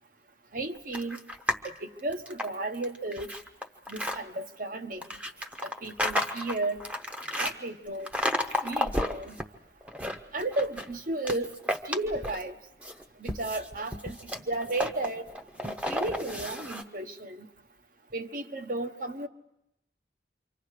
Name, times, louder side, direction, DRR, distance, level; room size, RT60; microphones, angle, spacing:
voice 1, 0.5-1.2 1.6-3.3 3.9-5.0 5.6-6.8 7.4-8.1 8.6-9.4 10.3-11.5 11.9-12.6 13.2-14.2 14.5-15.3 15.6-17.5 18.1-19.3, right 2 dB, 50° right, 7 dB, 1.2 m, -33 dB
sound 1, 0.9-1.7 2.1-4.2 5.0-7.5 8.1-9.4 9.8-10.9 11.2-12.5 12.8-16.8, equal, 5° right, 0.9 m, -32 dB
28.0 x 24.5 x 5.0 m, 0.86 s
head